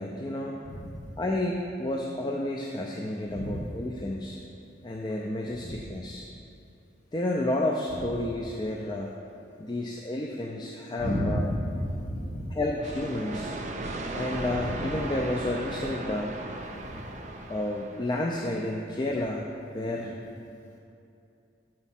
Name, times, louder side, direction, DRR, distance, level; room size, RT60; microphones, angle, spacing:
voice 1, 0.0-0.6 1.2-4.4 4.8-6.3 7.1-9.1 9.6-11.5 12.6-13.5 14.1-16.4 17.5-19.5 19.7-20.1, left 1 dB, 25° left, -1 dB, 0.3 m, -31 dB
voice 2, 0.6-1.1 3.3-3.7 5.5-5.9 11.0-12.6 14.5-15.0 16.7-17.0 20.0-20.2, equal, 40° left, -5 dB, 1.4 m, -33 dB
sound 1, 12.8-18.5, right 2 dB, 40° right, 0.4 m, -37 dB
7.2 x 4.4 x 5.7 m, 2.6 s
head